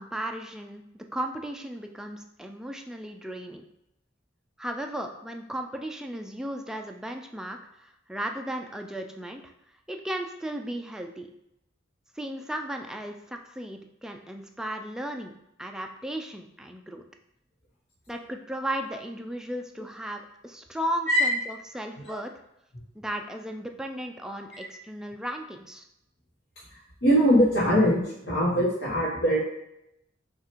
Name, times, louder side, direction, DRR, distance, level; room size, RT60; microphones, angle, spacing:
voice 1, 0.0-3.6 4.6-9.5 9.9-11.3 12.2-15.3 15.6-17.0 18.1-22.3 23.0-25.9, right 1 dB, 5° right, 3 dB, 0.3 m, -35 dB
voice 2, 26.7-29.4, equal, 75° left, -8 dB, 1.1 m, -22 dB
5.8 x 2.4 x 3.0 m, 0.82 s
head